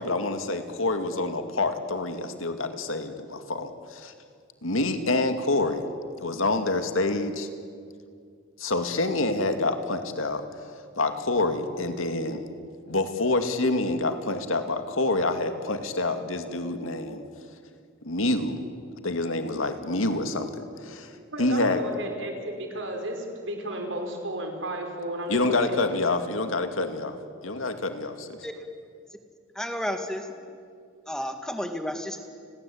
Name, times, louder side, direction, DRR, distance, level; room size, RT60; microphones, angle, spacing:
voice 1, 0.0-4.1 4.6-5.8 6.2-7.5 8.6-10.4 11.0-12.5 12.9-17.2 18.0-18.6 19.0-21.1 21.4-21.8 25.3-27.2 27.4-28.4, left 2 dB, 90° left, 7 dB, 2.4 m, -27 dB
voice 2, 21.1-25.8, right 1 dB, 65° right, 4 dB, 5.1 m, -33 dB
voice 3, 29.6-30.3 31.1-32.2, equal, 5° left, 5 dB, 2.1 m, -31 dB
30.0 x 21.5 x 8.7 m, 2.2 s
head